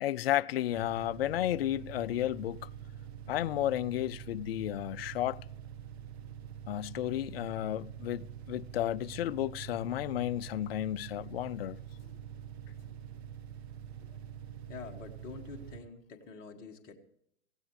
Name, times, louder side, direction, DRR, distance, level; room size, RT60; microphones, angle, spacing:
voice 1, 0.0-2.7 3.3-5.4 6.7-11.8, left 13 dB, 55° left, 0.4 m, -32 dB
sound 1, 0.7-15.8, right 9 dB, 60° right, 1.4 m, -45 dB
voice 2, 14.7-17.0, left 5 dB, 25° left, 1.6 m, -47 dB
17.0 x 16.0 x 3.2 m
hypercardioid pair, 125°, 37 cm